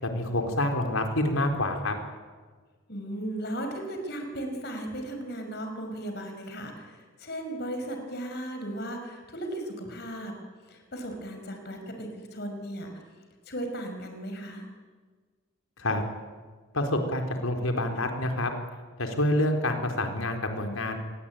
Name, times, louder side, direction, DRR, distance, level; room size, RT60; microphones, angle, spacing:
voice 1, 0.0-1.9 15.8-16.0 16.7-18.5 19.0-21.0, left 1 dB, 85° left, 4 dB, 4.4 m, -27 dB
voice 2, 2.9-10.4 10.7-13.0 13.5-14.7, right 1 dB, 50° left, 5 dB, 5.6 m, -36 dB
27.5 x 22.5 x 9.3 m, 1.4 s
head